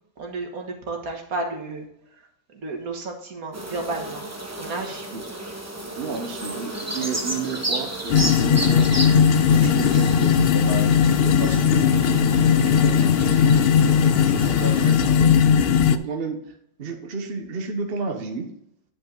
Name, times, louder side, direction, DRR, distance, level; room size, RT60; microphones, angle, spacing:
voice 1, 0.2-1.9 2.5-4.2 4.6-5.1, right 2 dB, 75° right, 2 dB, 1.9 m, -32 dB
sound 1, 3.5-14.9, right 1 dB, 15° right, 0.9 m, -33 dB
voice 2, 5.9-9.1 9.5-16.4 16.8-18.5, right 4 dB, 45° right, 4 dB, 1.1 m, -32 dB
sound 2, 8.1-16.0, left 7 dB, 70° left, 0.5 m, -18 dB
9.5 x 5.6 x 3.8 m, 0.69 s
omnidirectional pair, 1.5 m